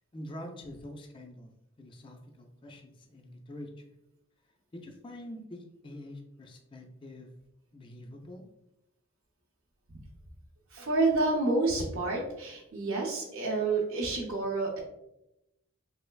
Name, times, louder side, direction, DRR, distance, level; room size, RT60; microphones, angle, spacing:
voice 1, 0.1-1.5 1.8-3.8 4.7-7.3 7.7-8.5, left 1 dB, 25° left, 3 dB, 0.3 m, -45 dB
voice 2, 10.7-14.7, right 3 dB, 80° right, -2 dB, 0.6 m, -29 dB
3.2 x 3.2 x 2.2 m, 0.87 s
head